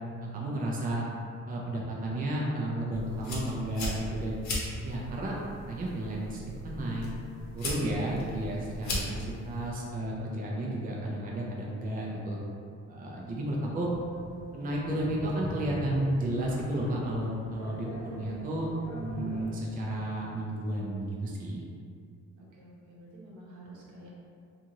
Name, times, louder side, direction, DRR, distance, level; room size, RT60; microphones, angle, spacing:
voice 1, 0.3-1.0 1.5-4.4 4.8-5.4 5.7-7.0 7.5-12.4 12.9-13.9 14.5-21.6, right 1 dB, 30° right, -3 dB, 0.5 m, -32 dB
sound 1, 2.9-9.7, left 1 dB, 65° left, 0.8 m, -38 dB
sound 2, 13.9-19.5, left 1 dB, 40° left, 0.9 m, -41 dB
voice 2, 22.4-24.2, right 1 dB, 80° right, -6 dB, 0.9 m, -50 dB
2.6 x 2.4 x 2.9 m, 2.3 s
cardioid pair, 90°, 30 cm